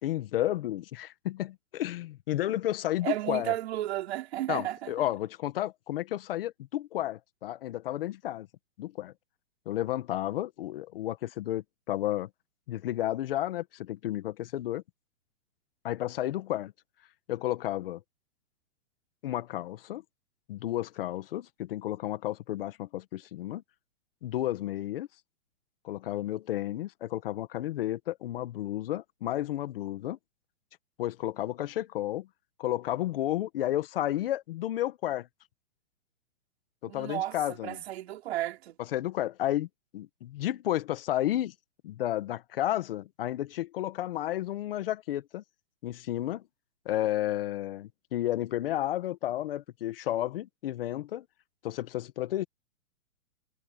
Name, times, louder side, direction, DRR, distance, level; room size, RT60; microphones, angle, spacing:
voice 1, 0.0-3.5 4.5-8.5 8.8-9.1 9.6-12.3 12.7-14.8 15.8-16.7 17.3-18.0 19.2-20.0 20.5-23.6 24.2-25.1 25.8-30.2 31.0-32.3 32.6-35.3 36.8-37.8 38.9-39.7 39.9-41.5 41.8-45.4 45.8-46.4 46.8-51.2 51.6-52.4, left 13 dB, 40° left, 1.4 m, -32 dB
voice 2, 3.0-4.9 36.9-38.8, right 14 dB, 45° right, 3.5 m, -33 dB
hypercardioid pair, 160°, 43 cm